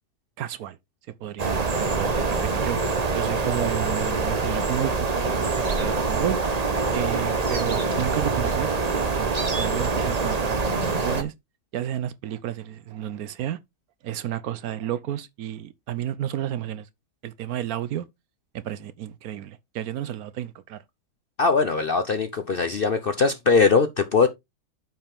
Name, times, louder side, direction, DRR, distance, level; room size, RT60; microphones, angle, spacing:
voice 1, 0.4-0.8 1.2-5.5 5.8-6.4 6.9-11.3 11.7-13.6 14.0-16.9 17.2-18.0 18.5-20.8, right 11 dB, 70° right, 1.1 m, -32 dB
sound 1, 1.4-11.2, right 4 dB, 30° right, 0.9 m, -25 dB
voice 2, 21.4-24.3, left 4 dB, 50° left, 0.6 m, -21 dB
9.0 x 5.6 x 3.5 m
omnidirectional pair, 1.7 m